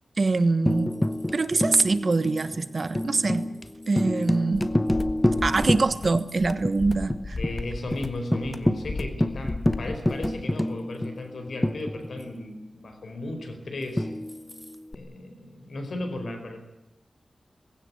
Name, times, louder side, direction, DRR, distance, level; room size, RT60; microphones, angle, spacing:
voice 1, 0.2-1.0 1.3-3.5 3.9-4.8 5.4-7.4, right 3 dB, 50° right, 13 dB, 1.3 m, -24 dB
Tambourine, 0.7-6.3 6.6-6.7 7.1-7.6 7.9-8.0 8.3-12.4 14.0-14.9, left 1 dB, 10° left, 1.0 m, -28 dB
sound 1, 4.5-10.4, left 3 dB, 45° left, 1.4 m, -35 dB
voice 2, 7.4-14.1 14.9-16.6, left 2 dB, 80° left, 6 dB, 4.8 m, -35 dB
20.0 x 17.0 x 9.8 m, 1.0 s
wide cardioid pair, 110°, 0 cm